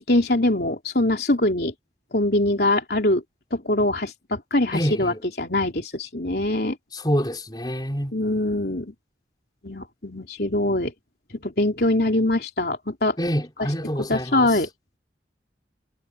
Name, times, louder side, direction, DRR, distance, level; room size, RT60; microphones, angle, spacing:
voice 1, 0.0-1.7 2.1-3.2 3.5-6.8 8.1-8.9 9.6-10.9 11.4-13.1 14.1-14.7, left 1 dB, 65° left, 3.2 m, -23 dB
voice 2, 4.7-5.2 6.9-8.1 13.2-14.6, equal, 25° left, 4.7 m, -26 dB
head